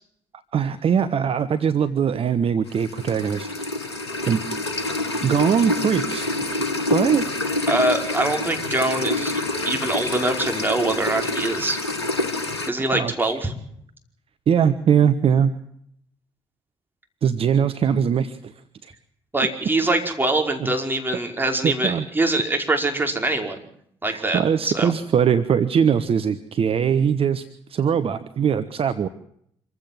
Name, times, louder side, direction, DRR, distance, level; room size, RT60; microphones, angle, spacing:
voice 1, 0.5-3.5 4.3-4.4 5.2-6.3 6.9-7.3 12.9-13.3 14.5-15.5 17.2-18.5 18.8-18.9 20.6-20.7 21.6-22.0 24.1-27.4 27.7-29.1, right 7 dB, 45° right, 10 dB, 1.2 m, -21 dB
sound 1, 2.7-12.7, left 2 dB, 85° left, 1.2 m, -27 dB
voice 2, 7.7-11.8 12.7-13.5 19.3-23.6 24.0-24.9, right 2 dB, 15° right, 3 dB, 5.2 m, -23 dB
26.0 x 15.5 x 7.8 m, 0.69 s
figure-of-eight pair, 45°, 13 cm